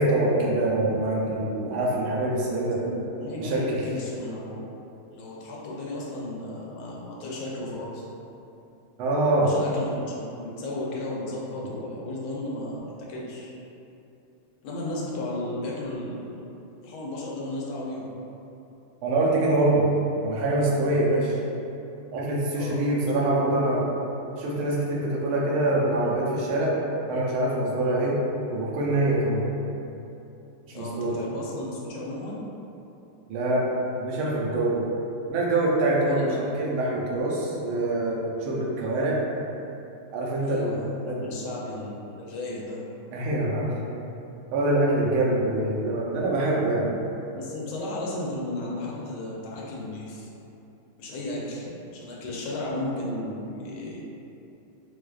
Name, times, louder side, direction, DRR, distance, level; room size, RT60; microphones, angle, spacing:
voice 1, 0.0-2.8 3.4-3.9 9.0-9.6 14.8-14.9 19.0-19.9 20.2-21.4 22.1-23.9 24.4-26.7 27.1-28.2 28.5-29.5 30.7-31.2 33.3-33.6 34.0-34.8 35.3-39.2 40.1-41.3 43.1-43.7 44.5-46.9, right 2 dB, 85° right, -4 dB, 1.5 m, -24 dB
voice 2, 2.8-4.6 5.1-8.0 9.4-13.5 14.6-16.4 16.8-18.1 22.5-23.5 25.3-25.5 30.7-32.5 36.0-36.5 40.4-42.8 47.3-50.3 51.0-51.7 51.9-54.0, left 1 dB, 80° left, -4 dB, 1.4 m, -34 dB
4.5 x 2.3 x 2.3 m, 2.8 s
omnidirectional pair, 2.3 m